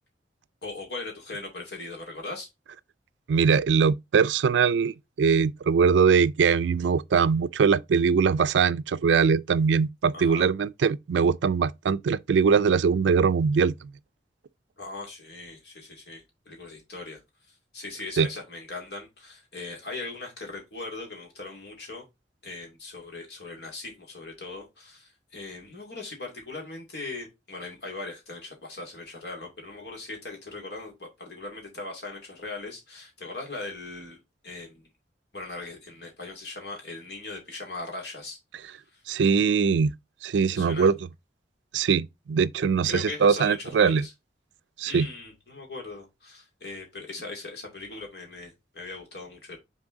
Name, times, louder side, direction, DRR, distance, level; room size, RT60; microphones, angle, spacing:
voice 1, 0.6-2.5 10.1-10.5 14.8-17.2 17.7-22.0 22.4-34.9 35.3-39.0 40.5-40.9 42.8-44.1 44.9-49.6, left 3 dB, 65° left, 2.5 m, -39 dB
voice 2, 3.3-13.7 18.2-18.3 39.1-39.9 40.2-40.9 41.7-44.0 44.8-45.1, right 6 dB, 85° right, 0.4 m, -22 dB
6.1 x 4.1 x 3.8 m
head